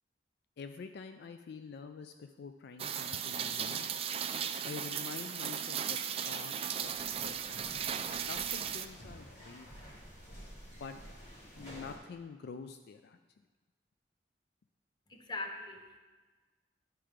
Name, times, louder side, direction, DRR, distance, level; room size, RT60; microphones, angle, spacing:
voice 1, 0.6-3.9 4.7-6.9 7.2-7.7 8.3-9.7 10.8-11.0 11.6-13.2, left 5 dB, 60° left, 8 dB, 0.4 m, -47 dB
Rain, 2.8-8.9, right 8 dB, 35° right, 0.4 m, -36 dB
sound 1, 6.8-12.0, equal, 40° left, 2.4 m, -51 dB
voice 2, 15.1-16.0, left 2 dB, 25° left, 3 dB, 0.8 m, -41 dB
10.5 x 4.5 x 5.0 m, 1.3 s
head